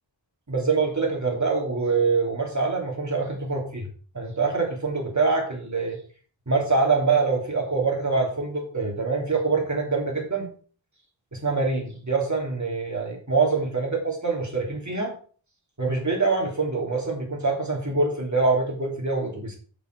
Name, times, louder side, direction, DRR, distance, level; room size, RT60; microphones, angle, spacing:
voice 1, 0.5-3.9 4.1-6.0 6.5-10.5 11.3-15.1 15.8-19.6, right 4 dB, 40° right, 0 dB, 3.3 m, -25 dB
7.3 x 6.8 x 6.2 m, 0.43 s
wide cardioid pair, 60°, 46 cm